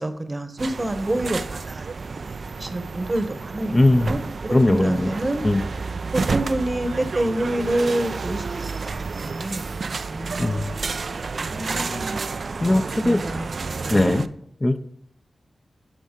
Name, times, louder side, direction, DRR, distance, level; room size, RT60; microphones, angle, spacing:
voice 1, 0.0-3.7 4.0-5.4 6.1-8.7 9.2-9.7 10.1-11.0 11.5-12.2 13.0-14.1, right 1 dB, 30° right, 9 dB, 0.9 m, -28 dB
sound 1, 0.6-14.3, right 4 dB, 65° right, 0.4 m, -30 dB
voice 2, 3.7-4.1 4.5-5.1 5.4-5.6 10.4-10.8 12.6-13.2 13.9-14.2 14.6-14.8, left 1 dB, 25° left, 7 dB, 0.5 m, -19 dB
10.5 x 5.3 x 3.7 m, 0.75 s
cardioid pair, 60°, 0 cm